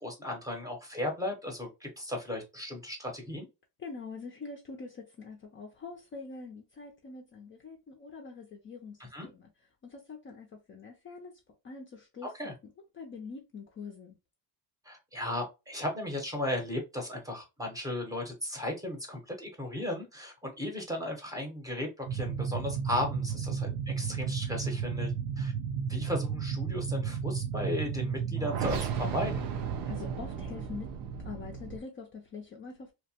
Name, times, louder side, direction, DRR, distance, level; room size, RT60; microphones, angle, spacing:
voice 1, 0.0-3.5 9.1-9.3 12.3-12.5 14.9-25.5 25.8-29.5, left 1 dB, 10° right, 0.7 m, -35 dB
voice 2, 3.8-9.5 9.8-11.3 11.6-14.2 29.9-30.9 31.2-32.9, left 4 dB, 30° left, 0.4 m, -44 dB
sound 1, 22.1-31.8, right 6 dB, 80° right, 0.7 m, -33 dB
2.8 x 2.1 x 2.7 m
cardioid pair, 130°, 41 cm